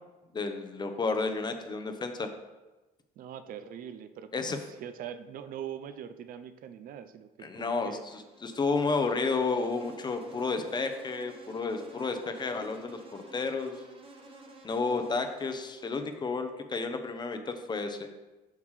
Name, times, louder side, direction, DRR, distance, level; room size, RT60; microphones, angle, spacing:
voice 1, 0.3-2.3 4.3-4.6 7.4-13.7 14.6-18.1, left 4 dB, 25° left, 6 dB, 0.7 m, -31 dB
voice 2, 3.2-8.0, right 9 dB, 60° right, 10 dB, 0.5 m, -42 dB
Insect, 8.1-16.3, right 2 dB, 35° right, 1.1 m, -52 dB
7.3 x 5.9 x 3.2 m, 1.1 s
cardioid pair, 110°, 17 cm